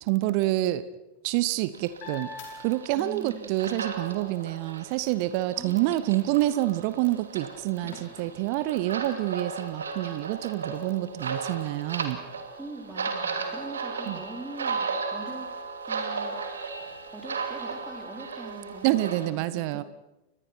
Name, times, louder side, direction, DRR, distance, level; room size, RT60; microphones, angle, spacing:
voice 1, 0.0-0.8 1.2-2.3 2.6-12.2 14.1-14.2 18.8-19.8, right 16 dB, 45° right, 16 dB, 0.9 m, -27 dB
sound 1, 1.1-3.4 3.9-9.3 9.9-10.0 10.4-18.4, left 4 dB, 50° left, 6.3 m, -51 dB
sound 2, 1.7-19.3, right 5 dB, 70° right, 2.6 m, -36 dB
voice 2, 2.9-3.6 5.6-6.4 12.6-15.5 15.9-16.4 17.1-19.8, right 2 dB, 5° right, 2 dB, 4.2 m, -43 dB
30.0 x 25.0 x 4.5 m, 0.96 s
figure-of-eight pair, 90°, 0 cm